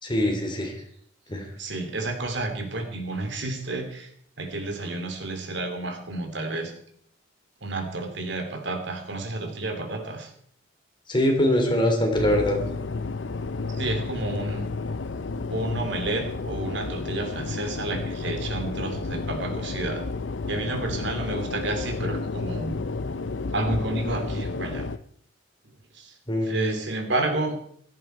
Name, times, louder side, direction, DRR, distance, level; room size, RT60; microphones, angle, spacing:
voice 1, 0.0-0.8 1.3-1.5 11.1-12.6 26.3-26.8, left 1 dB, 25° left, 3 dB, 3.4 m, -23 dB
voice 2, 1.6-4.1 4.4-6.7 7.6-10.3 13.7-14.7 15.5-20.0 20.5-22.8 23.5-24.9 25.6-26.2 26.4-27.6, right 2 dB, 70° right, 5 dB, 3.1 m, -30 dB
sound 1, 12.1-25.0, left 3 dB, 75° left, 0.7 m, -31 dB
16.5 x 14.0 x 4.6 m, 0.63 s
head